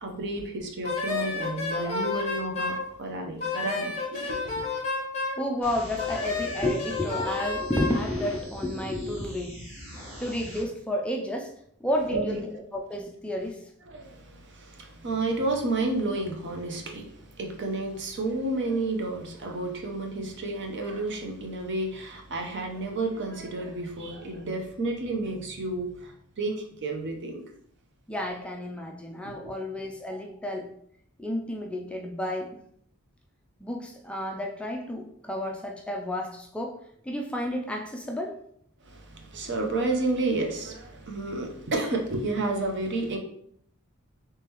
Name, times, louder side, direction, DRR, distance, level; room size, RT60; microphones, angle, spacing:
voice 1, 0.0-4.6 12.1-12.4 13.9-27.4 29.2-29.3 38.8-43.2, right 2 dB, 55° right, 2 dB, 0.7 m, -31 dB
Wind instrument woodwind instrument, 0.8-2.8 3.4-5.4 6.0-8.0, left 4 dB, 30° left, 0.9 m, -31 dB
voice 2, 5.4-9.6 10.2-11.5 11.8-13.6 28.1-30.7 31.2-32.6 33.6-36.7 37.1-38.3, left 1 dB, 5° left, 1 dB, 0.3 m, -31 dB
sound 1, 5.6-10.6, equal, 10° right, 1.2 m, -43 dB
3.6 x 3.3 x 2.9 m, 0.68 s
head